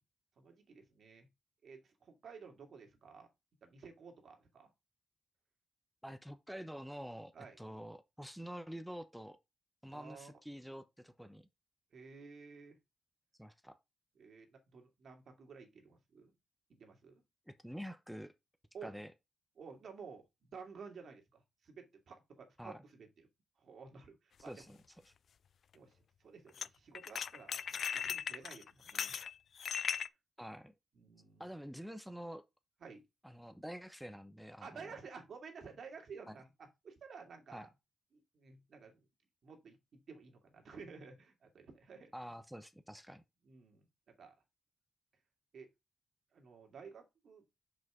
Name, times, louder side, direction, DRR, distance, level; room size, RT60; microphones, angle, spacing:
voice 1, 0.4-1.3 1.6-3.3 3.6-4.7 7.3-7.6 9.9-10.3 11.9-12.8 14.2-16.3 16.8-17.2 18.7-18.9 19.6-23.3 23.6-24.6 25.7-26.0 26.2-29.2 30.9-31.5 32.8-33.0 34.6-37.7 38.1-38.9 39.4-42.1 43.4-43.9 44.2-44.3 45.5-45.7 46.3-47.4, right 5 dB, 65° right, 2.2 m, -53 dB
voice 2, 6.0-7.3 7.6-9.4 9.8-11.5 13.4-13.8 17.5-18.3 18.8-19.1 22.6-22.8 24.5-24.8 25.1-25.2 30.4-30.7 31.4-32.4 33.2-35.0 36.3-36.4 37.5-37.7 42.1-43.2, equal, ahead, 0.8 m, -47 dB
sound 1, 24.4-24.5 26.6-26.7 26.9-30.1, left 7 dB, 65° left, 0.3 m, -38 dB
6.0 x 5.3 x 3.7 m
cardioid pair, 75°, 0 cm